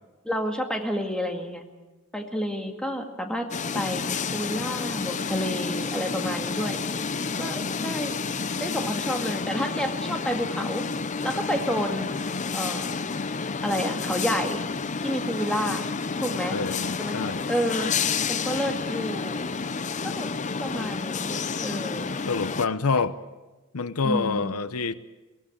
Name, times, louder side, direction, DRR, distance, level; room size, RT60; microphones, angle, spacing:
voice 1, 0.2-1.7 2.1-3.5 3.7-6.8 7.4-8.2 8.6-10.8 11.2-12.1 12.5-12.9 13.6-14.6 15.0-15.8 16.2-16.6 17.0-17.2 17.5-17.9 18.3-19.5 20.0-20.3 20.6-22.1 24.0-24.5, equal, 5° left, 2.0 m, -30 dB
sound 1, 3.5-22.7, left 5 dB, 35° left, 0.7 m, -30 dB
voice 2, 16.5-17.5 22.3-23.2 23.7-24.9, left 4 dB, 85° left, 0.8 m, -27 dB
22.5 x 17.0 x 8.8 m
head